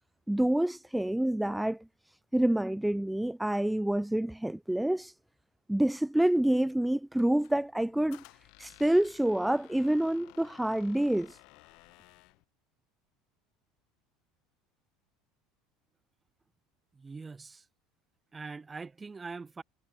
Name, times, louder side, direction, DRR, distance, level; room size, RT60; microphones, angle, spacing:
voice 1, 0.3-1.8 2.1-5.1 5.7-8.2 8.6-11.4, right 1 dB, 5° right, 0.8 m, -27 dB
Squeak, 7.2-12.4, left 27 dB, 60° left, 2.6 m, -56 dB
voice 2, 16.9-17.6 18.3-19.6, right 4 dB, 20° right, 3.6 m, -43 dB
figure-of-eight pair, 70°, 0 cm